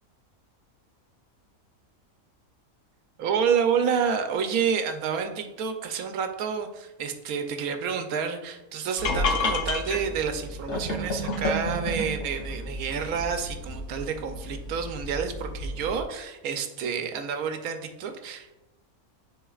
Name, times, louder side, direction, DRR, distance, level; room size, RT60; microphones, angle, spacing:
voice 1, 3.2-18.5, right 6 dB, 90° right, 6 dB, 1.2 m, -29 dB
sound 1, 9.0-16.0, left 2 dB, 60° left, 1.1 m, -31 dB
10.0 x 4.1 x 2.4 m, 1.0 s
omnidirectional pair, 1.5 m